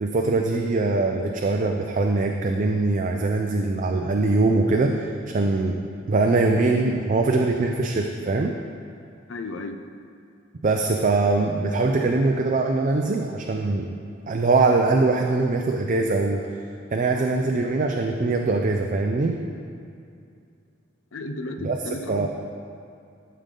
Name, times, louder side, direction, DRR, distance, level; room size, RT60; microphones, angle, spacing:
voice 1, 0.0-5.7 6.1-8.6 10.6-13.9 14.3-16.5 16.9-19.4 21.6-21.8 22.1-22.3, right 3 dB, 40° right, 3 dB, 0.5 m, -22 dB
voice 2, 9.3-9.8 21.1-22.3, left 2 dB, 80° left, 6 dB, 0.6 m, -33 dB
12.5 x 6.6 x 3.8 m, 2.4 s
head